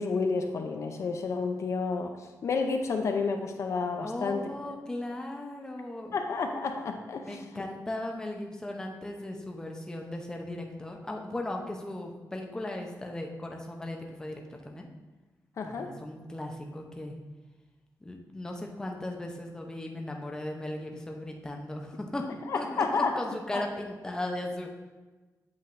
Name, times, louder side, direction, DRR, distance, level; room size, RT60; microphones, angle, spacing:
voice 1, 0.0-4.4 6.1-7.6 15.6-15.9 22.5-23.2 23.5-23.6, left 4 dB, 50° left, 5 dB, 0.6 m, -30 dB
voice 2, 4.0-6.2 7.2-14.9 15.6-17.2 18.0-22.2 22.5-24.7, left 1 dB, 10° left, 1 dB, 0.7 m, -37 dB
8.4 x 7.7 x 2.6 m, 1.2 s
wide cardioid pair, 180°, 6 cm